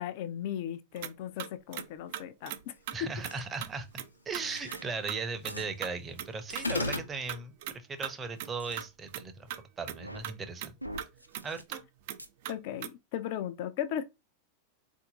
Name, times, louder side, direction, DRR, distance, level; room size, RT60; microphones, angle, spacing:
voice 1, 0.0-2.7 12.5-14.0, left 10 dB, 50° left, 0.6 m, -36 dB
sound 1, 1.0-1.1 1.4-1.9 2.1-2.6 2.9-3.0 3.2-3.3 3.6-3.7 4.0-4.4 4.7-4.8 5.1-5.2 5.4-5.6 5.8-5.9 6.2-6.3 6.5-6.7 6.9-7.8 8.0-8.1 8.4-8.5 8.8-9.6 9.9-10.0 10.2-10.3 10.6-10.7 11.0-11.4 11.7-11.8 12.1-12.9, right 11 dB, 50° right, 0.5 m, -39 dB
voice 2, 2.9-9.5 9.8-10.7 11.4-11.8, right 4 dB, 20° right, 0.7 m, -38 dB
sound 2, 3.2-3.4 4.3-4.8 5.5-5.7 6.5-6.9 8.6-8.8 9.9-10.2 10.8-11.6 12.2-12.3, equal, 90° right, 0.6 m, -44 dB
sound 3, 6.6-7.1, left 3 dB, 80° left, 0.9 m, -30 dB
4.2 x 2.7 x 3.9 m
figure-of-eight pair, 90°, 0 cm